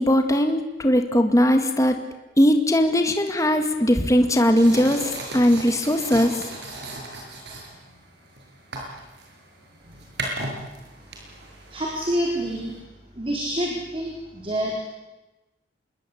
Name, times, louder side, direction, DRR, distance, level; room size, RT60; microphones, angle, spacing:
voice 1, 0.0-1.9 2.4-6.4, equal, 20° left, 6 dB, 2.0 m, -19 dB
sound 1, 3.5-12.8, right 2 dB, 70° right, 7.6 m, -37 dB
voice 2, 11.7-12.8 13.2-14.8, equal, 30° right, 0 dB, 4.4 m, -27 dB
26.5 x 21.5 x 8.7 m, 1.0 s
head